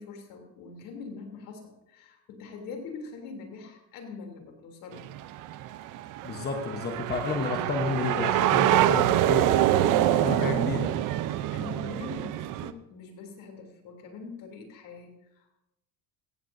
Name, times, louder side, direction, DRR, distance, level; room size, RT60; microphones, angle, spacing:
voice 1, 0.0-5.1 11.2-15.5, left 4 dB, 65° left, 2 dB, 3.2 m, -43 dB
sound 1, 4.9-12.7, right 12 dB, 60° right, 0.7 m, -25 dB
voice 2, 6.2-11.0, left 4 dB, 25° left, 4 dB, 1.1 m, -32 dB
16.0 x 15.0 x 2.7 m, 0.92 s
cardioid pair, 125°, 35 cm